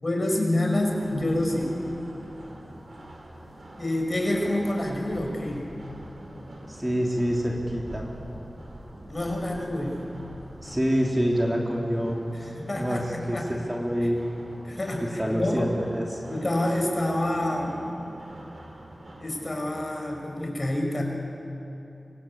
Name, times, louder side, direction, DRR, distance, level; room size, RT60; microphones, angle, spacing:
voice 1, 0.0-1.8 3.8-5.7 9.1-10.0 12.3-13.5 14.0-14.1 14.6-15.7 16.3-17.7 19.2-21.0, left 1 dB, 35° left, 1 dB, 5.9 m, -27 dB
sound 1, 0.7-20.5, right 1 dB, 70° right, 5.4 m, -44 dB
voice 2, 6.7-8.1 10.6-12.5 12.8-13.0 13.3-14.2 15.0-16.2, equal, 10° right, -1 dB, 3.0 m, -26 dB
26.0 x 25.5 x 8.8 m, 2.9 s
wide cardioid pair, 85°, 0 cm